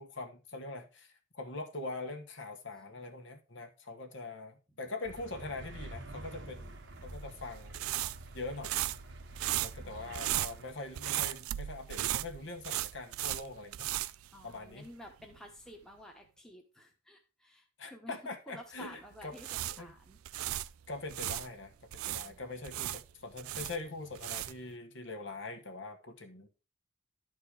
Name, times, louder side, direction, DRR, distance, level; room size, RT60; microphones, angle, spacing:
voice 1, 0.0-6.7 7.0-7.8 8.3-8.7 9.6-13.9 14.4-14.9 17.8-19.4 19.7-19.9 20.9-21.7 22.1-26.5, left 2 dB, 60° left, 5 dB, 1.5 m, -43 dB
sound 1, 5.0-10.7, right 1 dB, 55° right, 1.2 m, -48 dB
sound 2, 6.9-15.0 15.2-15.4 19.1-21.5 21.9-24.7, right 14 dB, 85° right, 0.4 m, -36 dB
voice 2, 9.8-10.5 14.3-18.2 18.5-20.2 22.1-22.4, left 1 dB, 5° left, 1 dB, 1.2 m, -52 dB
11.5 x 4.5 x 4.9 m, 0.31 s
head